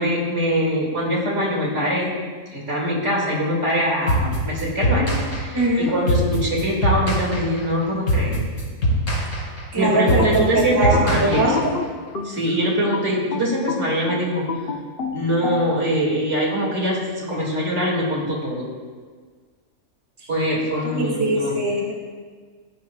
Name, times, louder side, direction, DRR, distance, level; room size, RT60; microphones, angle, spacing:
voice 1, 0.0-2.2 2.5-8.4 9.7-11.5 12.2-14.4 15.1-18.7 20.3-21.5, equal, 55° right, -3 dB, 2.5 m, -23 dB
sound 1, 4.1-11.9, equal, 65° left, 2.8 m, -23 dB
voice 2, 5.5-5.9 9.7-11.7 20.2-20.3 20.8-21.9, right 1 dB, 15° right, -3 dB, 2.0 m, -22 dB
sound 2, 9.8-12.4 12.9-15.6, left 4 dB, 45° left, 1.0 m, -30 dB
15.5 x 10.5 x 2.3 m, 1.5 s
omnidirectional pair, 1.5 m